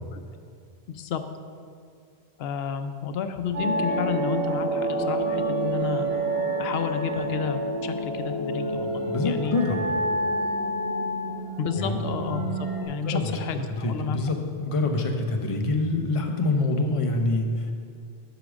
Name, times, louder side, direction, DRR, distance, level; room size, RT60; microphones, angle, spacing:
voice 1, 0.9-1.2 2.4-6.2 6.6-9.6 11.6-14.3, left 7 dB, 75° left, 8 dB, 0.8 m, -31 dB
sound 1, 3.5-12.8, right 1 dB, 85° right, 2.5 m, -28 dB
voice 2, 9.0-9.8 11.8-12.0 13.1-13.4 13.7-14.4 14.6-17.7, left 2 dB, 35° left, 3 dB, 0.7 m, -25 dB
8.1 x 4.9 x 6.2 m, 2.4 s
omnidirectional pair, 1.1 m